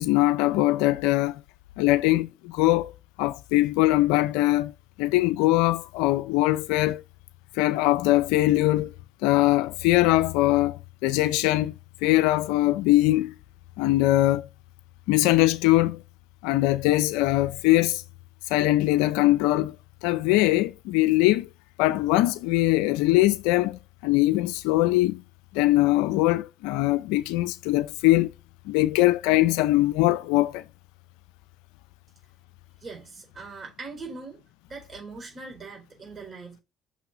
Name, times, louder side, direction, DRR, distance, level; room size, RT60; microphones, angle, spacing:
voice 1, 0.0-1.4 1.8-2.9 3.2-4.7 5.0-7.0 7.6-8.9 9.2-11.7 12.0-13.3 13.8-14.5 15.1-16.0 16.4-18.0 18.5-19.8 20.0-21.5 21.8-25.2 25.5-28.3 28.7-30.6, left 17 dB, 85° left, 0.4 m, -22 dB
voice 2, 32.8-34.4 34.7-36.6, right 4 dB, 35° right, 4.2 m, -41 dB
6.1 x 4.0 x 5.8 m
supercardioid pair, 70°, 0 cm